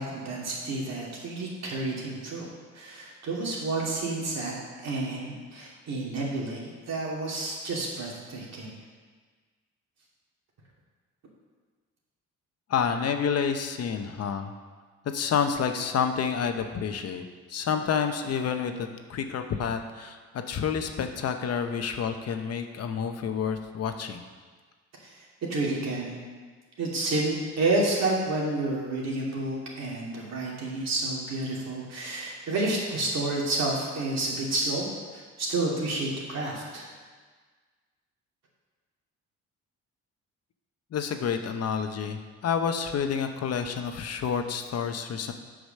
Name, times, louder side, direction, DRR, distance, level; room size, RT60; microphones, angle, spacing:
voice 1, 0.0-2.5 2.7-4.5 4.8-8.7 25.0-26.2 26.8-36.9, right 2 dB, 60° right, -4 dB, 2.7 m, -30 dB
voice 2, 12.7-14.5 15.1-24.2 40.9-45.3, left 7 dB, 55° left, 7 dB, 0.8 m, -29 dB
8.0 x 5.0 x 6.5 m, 1.5 s
cardioid pair, 90°, 30 cm